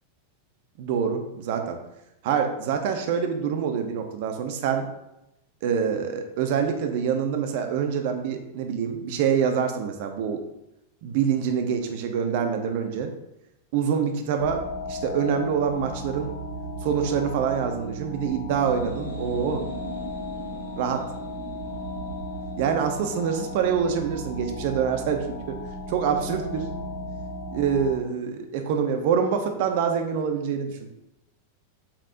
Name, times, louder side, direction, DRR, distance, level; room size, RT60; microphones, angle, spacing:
voice 1, 0.8-1.8 2.2-4.9 5.6-10.4 11.0-13.1 13.7-16.3 16.8-19.6 20.8-21.0 22.6-25.6 25.9-26.7 27.5-30.8, right 7 dB, 50° right, 5 dB, 0.9 m, -26 dB
sound 1, 14.4-28.0, equal, 75° right, 3.0 m, -35 dB
sound 2, 18.5-26.0, right 1 dB, 80° left, 2.4 m, -43 dB
8.7 x 7.6 x 2.7 m, 0.87 s
figure-of-eight pair, 90°, 0 cm